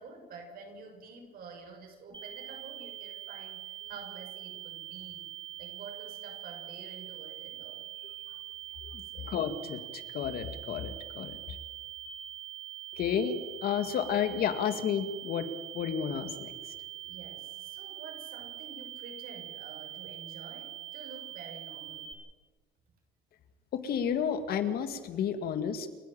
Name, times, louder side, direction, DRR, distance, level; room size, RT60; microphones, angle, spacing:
voice 1, 0.0-5.3 5.6-7.9 9.1-9.4 17.1-22.1, right 4 dB, 60° right, 3 dB, 6.5 m, -49 dB
sound 1, 2.1-22.1, right 13 dB, 25° right, 3.4 m, -44 dB
voice 2, 9.3-11.4 13.0-15.5 15.7-16.5 23.7-25.9, left 8 dB, 65° left, 9 dB, 2.3 m, -31 dB
29.5 x 10.5 x 9.1 m, 1.4 s
cardioid pair, 110°, 17 cm